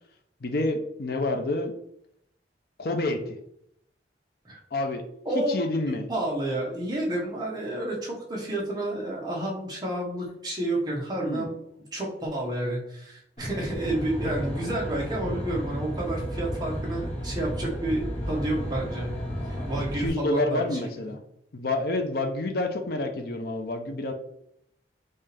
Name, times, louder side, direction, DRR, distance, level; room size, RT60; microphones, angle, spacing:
voice 1, 0.4-1.7 2.8-3.4 4.7-5.0 5.3-6.1 11.2-11.5 14.2-14.3 19.7-21.2 21.5-24.1, left 2 dB, 55° left, 5 dB, 0.6 m, -28 dB
voice 2, 5.2-5.5 6.1-11.6 11.9-19.1 19.7-20.6 21.0-21.1, right 1 dB, 25° right, -3 dB, 1.3 m, -30 dB
Aircraft, 13.4-20.1, equal, 40° left, 1.3 m, -33 dB
5.4 x 2.8 x 3.4 m, 0.74 s
head